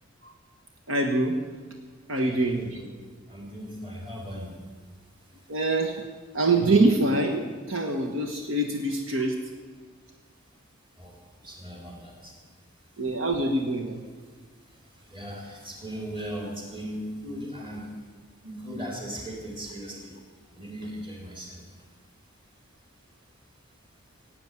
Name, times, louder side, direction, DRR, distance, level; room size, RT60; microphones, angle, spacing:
voice 1, 0.9-1.4 2.1-2.8 5.5-6.0 6.3-9.4 13.0-14.0, right 2 dB, 70° right, 3 dB, 1.5 m, -25 dB
voice 2, 2.2-2.9 3.3-4.6 11.0-12.3 14.7-17.9 18.4-20.2 20.5-21.7, equal, 25° right, -1 dB, 4.3 m, -38 dB
16.5 x 9.1 x 9.5 m, 1.5 s
head